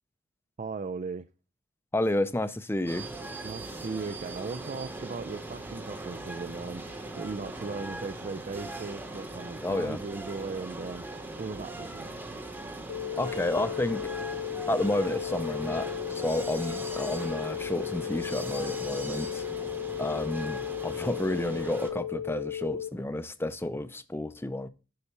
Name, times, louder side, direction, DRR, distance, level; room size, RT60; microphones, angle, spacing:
voice 1, 0.6-1.3 3.4-12.2, right 4 dB, 35° right, 0.4 m, -38 dB
voice 2, 1.9-3.1 9.6-10.0 13.2-14.1 14.7-19.4 20.0-24.7, left 1 dB, 10° left, 0.5 m, -31 dB
sound 1, 2.9-21.9, right 2 dB, 10° right, 1.0 m, -40 dB
sound 2, 12.9-22.9, left 10 dB, 85° left, 0.7 m, -35 dB
11.5 x 4.1 x 7.0 m
head